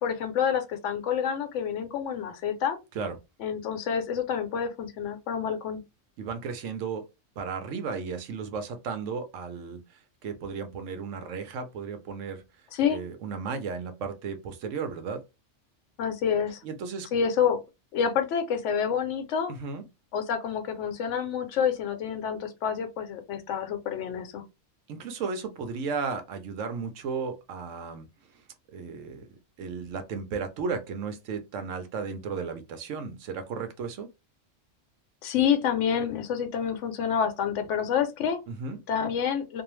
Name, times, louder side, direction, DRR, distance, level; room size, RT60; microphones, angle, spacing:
voice 1, 0.0-2.8 3.4-5.8 12.7-13.0 16.0-16.6 17.1-17.6 17.9-19.5 20.1-24.4 35.2-38.4 38.9-39.6, left 7 dB, 75° left, 0.9 m, -28 dB
voice 2, 6.2-7.0 7.4-9.8 10.2-12.4 12.9-15.2 16.6-17.1 19.6-19.8 24.9-28.1 28.7-29.2 29.6-34.1 38.5-38.8, right 5 dB, 75° right, 0.9 m, -34 dB
2.6 x 2.0 x 3.0 m
omnidirectional pair, 1.3 m